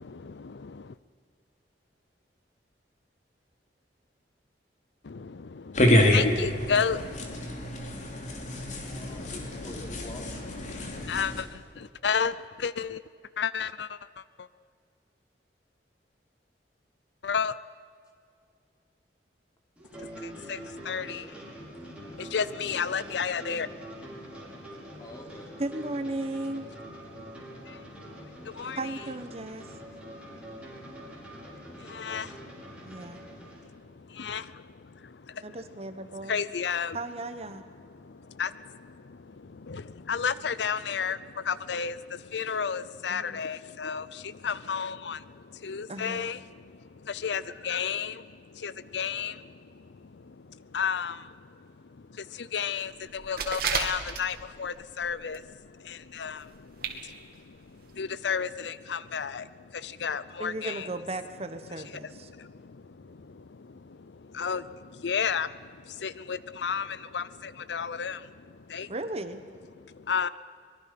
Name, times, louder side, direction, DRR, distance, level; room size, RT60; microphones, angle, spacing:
sound 1, 5.8-11.4, left 1 dB, 45° left, 2.9 m, -27 dB
voice 1, 6.1-7.0 11.1-11.3 12.0-12.3 12.6-13.0 13.4-13.9 17.2-17.5 20.5-20.6 20.9-21.2 22.3-23.7 28.6-28.8 32.0-32.3 34.2-34.4 36.3-37.0 38.4-38.5 40.1-41.2 41.5-41.9 42.3-44.0 44.4-45.2 45.6-46.4 47.2-48.1 48.6-49.3 50.7-51.1 52.5-52.9 53.3-55.4 56.2-56.4 58.0-59.4 60.0-60.9 64.4-64.6 65.0-65.5 66.0-66.9 67.1-67.2 67.7-68.2 68.7-68.9 70.1-70.3, left 6 dB, 80° left, 17 dB, 0.6 m, -30 dB
voice 2, 8.5-10.3 20.8-21.4 25.0-25.5, left 1 dB, 20° left, 1 dB, 3.1 m, -46 dB
sound 2, 19.8-33.6, right 1 dB, 5° right, 5.5 m, -45 dB
voice 3, 25.6-26.7 28.8-29.7 32.8-33.2 35.4-36.4 36.9-37.6 43.1-43.4 45.9-46.3 60.4-62.3 68.9-69.4, right 2 dB, 35° right, 9 dB, 1.2 m, -36 dB
sound 3, 53.2-54.6 55.0-55.5 55.7-55.8 56.5-56.6 56.8-57.0 57.3-57.4 57.9-58.0, right 5 dB, 55° right, 2.5 m, -31 dB
24.5 x 22.0 x 6.0 m, 2.2 s
head